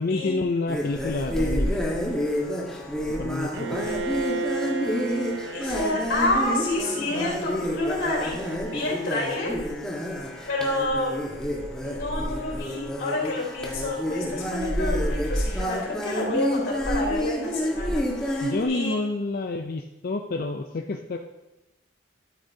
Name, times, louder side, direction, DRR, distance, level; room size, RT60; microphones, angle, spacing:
voice 1, 0.0-1.8 2.5-4.0 18.4-21.2, left 3 dB, 50° left, 4 dB, 0.5 m, -29 dB
sound 1, 0.7-18.6, equal, 5° left, 1.3 m, -29 dB
Bowed string instrument, 3.5-9.5, right 3 dB, 65° right, 0.5 m, -34 dB
voice 2, 5.5-9.5 10.5-11.2 11.8-18.9, left 2 dB, 85° left, -3 dB, 3.6 m, -29 dB
12.5 x 8.8 x 2.7 m, 1.0 s
head